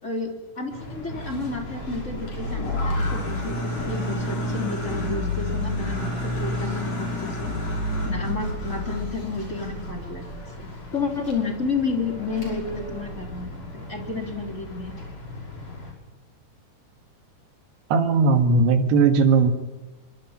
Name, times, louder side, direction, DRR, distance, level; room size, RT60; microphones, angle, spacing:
voice 1, 0.0-7.5 8.0-10.2 10.6-15.0, left 4 dB, 20° left, 2 dB, 3.1 m, -31 dB
sound 1, 0.7-15.9, left 1 dB, 40° left, 6.8 m, -31 dB
voice 2, 17.9-19.5, right 4 dB, 85° right, 6 dB, 3.9 m, -18 dB
24.5 x 24.0 x 5.8 m, 1.2 s
omnidirectional pair, 4.6 m